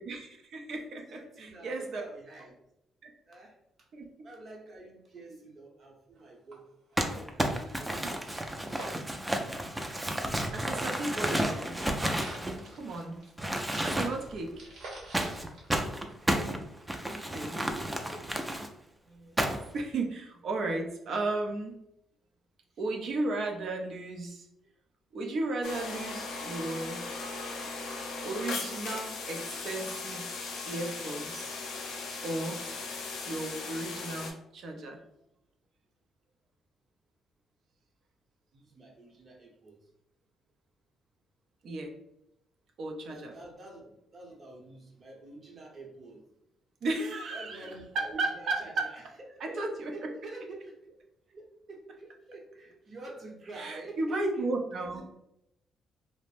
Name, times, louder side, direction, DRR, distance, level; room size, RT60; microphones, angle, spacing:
voice 1, 0.0-2.0 3.0-3.1 3.9-4.3 7.6-8.5 8.9-9.2 10.5-11.8 12.4-13.2 13.8-14.7 16.3-16.6 17.1-17.6 19.1-21.7 22.8-24.5 25.1-27.1 28.2-30.3 30.7-31.5 32.2-32.6 33.1-35.0 41.6-42.0 42.8-43.3 46.8-48.9 49.4-50.1 53.5-55.0, right 2 dB, 65° right, 2 dB, 0.5 m, -35 dB
voice 2, 1.1-2.5 3.3-3.5 4.2-6.7 6.9-8.8 13.1-13.9 14.3-14.7 17.2-18.3 38.5-39.8 43.1-46.2 47.3-49.0 49.3-50.9 51.3-54.5 54.7-55.0, right 2 dB, 45° right, -1 dB, 0.9 m, -48 dB
sound 1, 6.2-6.3 6.5-6.6 6.9-10.1 10.3-16.4 16.8-16.9, right 2 dB, 80° right, 0.9 m, -48 dB
Crumpling crinkling, 7.0-13.0 13.4-14.4 15.1-18.7 19.4-19.8, right 1 dB, 10° right, 0.4 m, -31 dB
sound 2, 25.6-34.3, left 4 dB, 85° left, 0.5 m, -38 dB
2.5 x 2.1 x 3.3 m, 0.82 s
cardioid pair, 90°, 0 cm